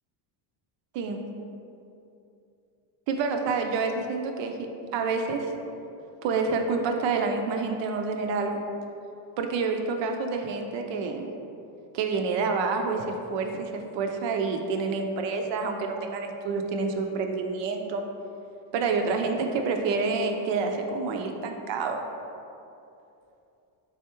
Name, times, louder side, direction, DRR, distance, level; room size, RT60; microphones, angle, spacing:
voice 1, 3.1-4.7 4.9-5.5 6.2-8.7 9.4-11.3 11.9-18.0 18.7-22.0, right 4 dB, 60° right, 4 dB, 0.6 m, -28 dB
4.1 x 3.4 x 3.0 m, 2.7 s
cardioid pair, 115°, 49 cm